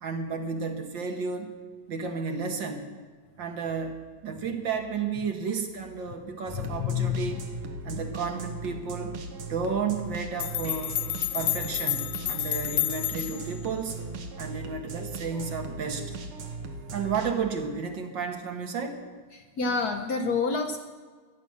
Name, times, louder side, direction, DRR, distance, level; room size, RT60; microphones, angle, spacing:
voice 1, 0.0-1.5 1.9-2.9 3.4-4.0 4.2-7.4 7.8-9.2 9.5-11.0 11.3-14.0 14.4-16.1 16.9-19.0, right 5 dB, 65° right, 5 dB, 1.9 m, -32 dB
voice 2, 6.5-7.4 7.9-8.0 19.3-20.8, left 5 dB, 60° left, 5 dB, 1.1 m, -29 dB
sound 1, 6.5-17.4, right 3 dB, 80° right, 2.0 m, -38 dB
sound 2, 10.4-13.6, left 15 dB, 80° left, 1.4 m, -30 dB
14.0 x 10.5 x 6.4 m, 1.5 s
omnidirectional pair, 2.3 m